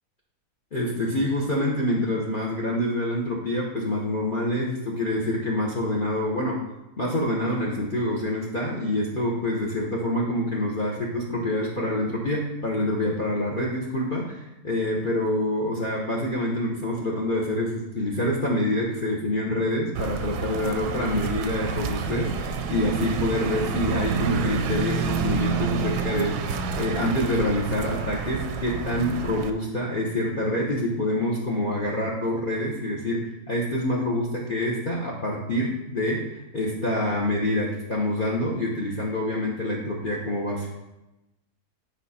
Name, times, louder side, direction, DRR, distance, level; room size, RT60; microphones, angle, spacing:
voice 1, 0.7-6.6 7.0-26.4 26.8-40.7, left 1 dB, 35° left, -3 dB, 1.0 m, -26 dB
sound 1, 19.9-29.5, right 6 dB, 85° right, 1.3 m, -29 dB
9.1 x 4.9 x 4.2 m, 0.96 s
omnidirectional pair, 1.7 m